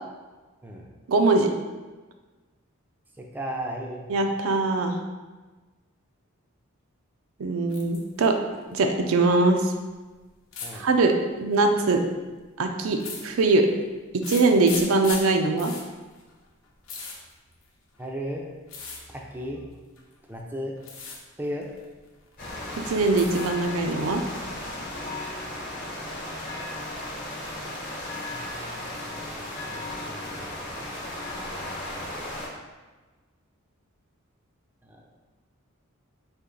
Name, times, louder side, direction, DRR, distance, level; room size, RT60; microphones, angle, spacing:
voice 1, 1.1-1.5 4.1-5.0 7.4-8.3 8.7-9.7 10.7-11.1 11.4-12.0 12.6-13.7 14.3-15.7 22.9-24.2, right 3 dB, 80° right, 4 dB, 0.5 m, -22 dB
voice 2, 3.2-4.0 10.6-10.9 18.0-18.4 19.1-19.8 20.3-20.8 21.4-21.7 28.3-29.4 29.7-30.7 31.3-32.2 34.8-35.1, equal, 10° right, -1 dB, 0.4 m, -36 dB
sound 1, 7.7-8.3 8.6-9.3 10.5-10.8 11.7-12.0 12.9-13.7 14.2-18.0 18.7-19.0 20.0-20.4 20.8-21.2 21.5-22.4 22.7-23.7 24.0-24.7, left 4 dB, 75° left, 0.8 m, -38 dB
sound 2, 22.4-32.5, left 1 dB, 45° left, 1.0 m, -35 dB
4.3 x 3.0 x 3.8 m, 1.2 s
head